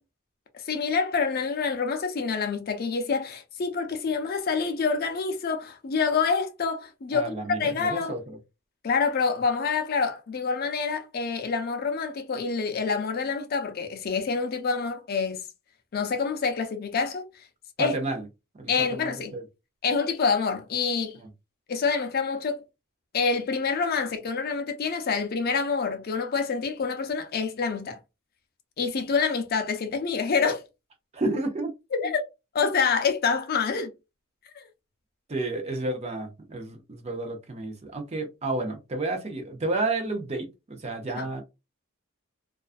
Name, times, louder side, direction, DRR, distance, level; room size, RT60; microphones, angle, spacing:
voice 1, 0.7-8.1 8.8-15.4 15.9-17.5 17.8-17.9 18.7-19.3 19.8-21.2 21.7-22.6 23.1-28.0 28.8-30.6 31.9-32.2 32.5-33.9 34.5-34.7 41.1-41.3, left 5 dB, 45° left, 0.4 m, -27 dB
voice 2, 7.1-8.4 17.8-18.3 18.5-19.4 31.1-31.7 35.3-41.4, right 2 dB, 30° right, 0.5 m, -31 dB
2.4 x 2.2 x 2.4 m
head